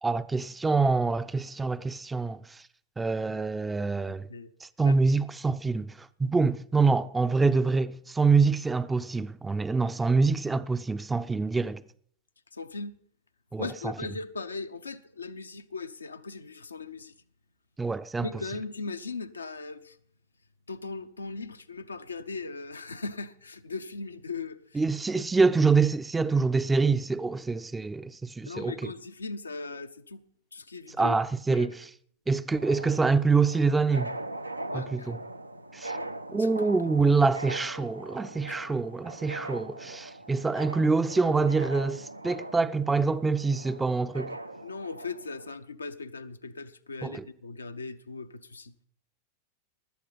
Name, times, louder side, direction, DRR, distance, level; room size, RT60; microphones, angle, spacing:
voice 1, 0.0-2.6 3.0-4.3 4.6-11.8 13.5-13.9 17.8-18.3 24.7-28.9 30.9-31.9 32.3-34.1 34.7-35.2 35.7-36.0 36.3-44.4 47.0-47.2, right 4 dB, 10° right, 0.4 m, -26 dB
voice 2, 12.5-13.0 13.6-17.1 18.2-20.0 20.7-24.6 28.5-30.2 30.5-31.2 31.5-31.7 34.7-35.1 35.9-36.5 38.5-38.6 44.6-48.7, left 3 dB, 75° left, 0.6 m, -38 dB
sound 1, 32.5-45.5, right 2 dB, 85° right, 0.5 m, -41 dB
16.5 x 11.5 x 4.0 m
figure-of-eight pair, 90°, 0 cm